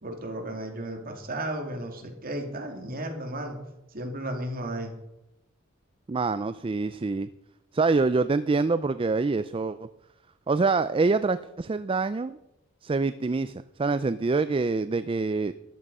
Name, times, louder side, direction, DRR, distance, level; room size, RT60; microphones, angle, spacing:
voice 1, 0.0-3.6 3.9-4.9, right 1 dB, 45° right, 3 dB, 2.7 m, -34 dB
voice 2, 6.1-7.3 7.7-9.9 10.5-12.4 12.8-13.5 13.8-15.5, right 3 dB, 25° right, 13 dB, 0.4 m, -25 dB
14.0 x 11.5 x 5.5 m, 0.87 s
head